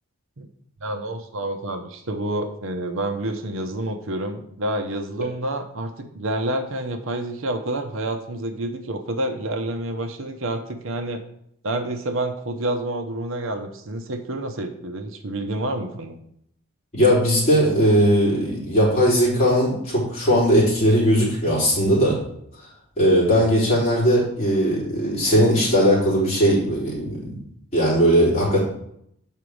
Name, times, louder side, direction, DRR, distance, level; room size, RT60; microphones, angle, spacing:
voice 1, 0.8-11.2 11.6-16.2, right 1 dB, 70° right, 6 dB, 0.8 m, -28 dB
voice 2, 16.9-22.2 23.0-27.4 27.7-28.6, equal, 30° left, -7 dB, 3.6 m, -19 dB
7.4 x 5.1 x 4.9 m, 0.72 s
head